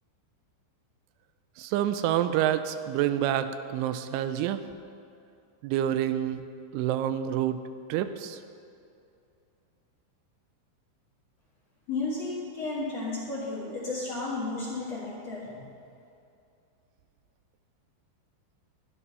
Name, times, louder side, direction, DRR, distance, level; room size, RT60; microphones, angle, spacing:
voice 1, 1.6-4.6 5.6-6.4 6.7-7.6 7.9-8.4, right 11 dB, 85° right, 11 dB, 3.0 m, -27 dB
voice 2, 11.9-15.7, left 3 dB, 50° left, -7 dB, 2.1 m, -33 dB
12.5 x 11.0 x 5.5 m, 2.5 s
omnidirectional pair, 5.5 m